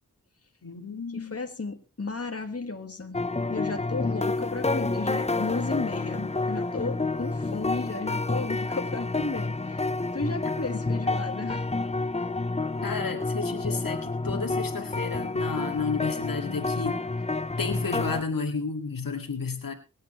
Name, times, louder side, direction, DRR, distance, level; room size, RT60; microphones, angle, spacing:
voice 1, 0.6-1.4 10.7-10.8 12.8-17.0 17.6-19.7, left 4 dB, 80° left, 4 dB, 2.1 m, -32 dB
voice 2, 1.1-3.2 3.5-11.7, left 3 dB, 45° left, 5 dB, 1.9 m, -34 dB
sound 1, 3.1-18.2, left 3 dB, 20° left, 0.7 m, -29 dB
23.5 x 9.3 x 3.2 m, 0.30 s
cardioid pair, 45°, 33 cm